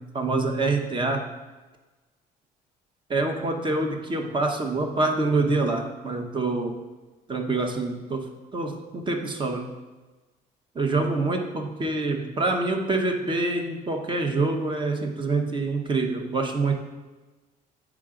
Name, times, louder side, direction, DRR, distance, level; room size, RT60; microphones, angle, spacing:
voice 1, 0.1-1.3 3.1-6.8 7.3-9.7 10.7-16.7, right 3 dB, 30° right, 4 dB, 0.9 m, -26 dB
7.4 x 4.8 x 3.8 m, 1.2 s
cardioid pair, 110°, 17 cm